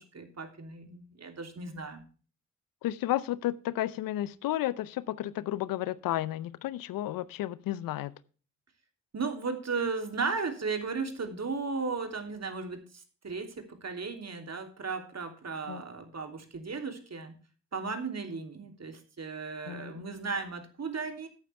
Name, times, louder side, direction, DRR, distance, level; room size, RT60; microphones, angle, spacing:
voice 1, 0.0-2.0 9.1-17.3 17.7-21.3, right 4 dB, 50° right, 6 dB, 3.0 m, -35 dB
voice 2, 2.8-8.1 15.7-15.8 19.7-20.0, left 14 dB, 80° left, 19 dB, 0.7 m, -32 dB
13.5 x 9.3 x 3.4 m, 0.38 s
hypercardioid pair, 40°, 34 cm